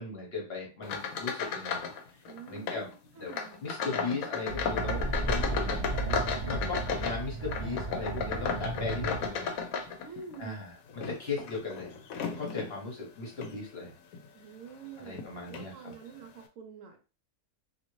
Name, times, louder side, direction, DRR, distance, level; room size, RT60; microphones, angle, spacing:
voice 1, 0.0-3.3 3.6-5.9 6.4-9.5 10.4-14.0 15.0-15.9, left 3 dB, 50° left, -1 dB, 1.1 m, -38 dB
sound 1, 0.8-2.0 2.3-2.8 3.3-10.4 10.9-12.7 13.3-13.6 14.1-14.3 15.1-15.2 15.5-15.7, left 5 dB, 75° left, 1.0 m, -34 dB
voice 2, 2.3-3.6 10.0-10.6 14.3-17.0, right 6 dB, 70° right, 4 dB, 1.0 m, -47 dB
sound 2, 4.4-9.7, right 4 dB, 55° right, 0.5 m, -36 dB
sound 3, 4.9-9.4 9.8-9.9, right 1 dB, 10° left, 0.9 m, -37 dB
2.6 x 2.6 x 3.0 m, 0.33 s
omnidirectional pair, 1.5 m